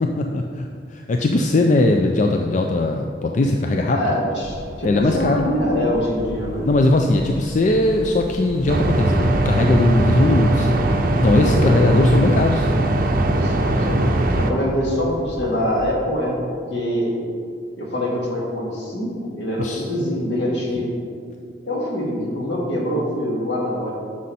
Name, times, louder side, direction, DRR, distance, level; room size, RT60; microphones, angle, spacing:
voice 1, 0.0-4.1 4.8-5.5 6.7-12.7 19.6-19.9 20.7-20.8, left 2 dB, 40° left, 3 dB, 0.4 m, -20 dB
voice 2, 3.9-6.7 11.4-12.0 13.4-14.0 14.4-17.1 17.8-20.9 21.6-23.9, equal, 70° left, -3 dB, 2.0 m, -24 dB
sound 1, 4.4-15.9, equal, 15° right, 0.9 m, -37 dB
sound 2, 8.7-14.5, right 1 dB, 50° right, 0.6 m, -19 dB
9.5 x 6.3 x 4.2 m, 2.2 s
head